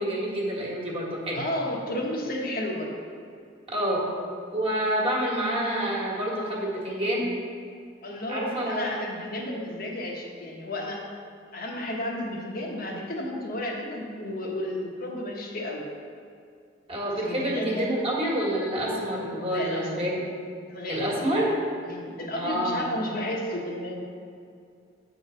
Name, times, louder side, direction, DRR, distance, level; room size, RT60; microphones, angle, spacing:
voice 1, 0.0-1.4 3.7-4.0 4.5-7.3 8.3-8.8 16.9-20.2 20.9-21.5 22.4-22.8, right 1 dB, 30° right, -4 dB, 1.5 m, -28 dB
voice 2, 1.3-2.9 8.0-11.0 11.5-15.8 17.2-18.1 19.5-20.1 20.7-21.4 21.8-24.0, left 1 dB, 55° left, -1 dB, 1.2 m, -32 dB
8.7 x 3.9 x 6.2 m, 2.3 s
head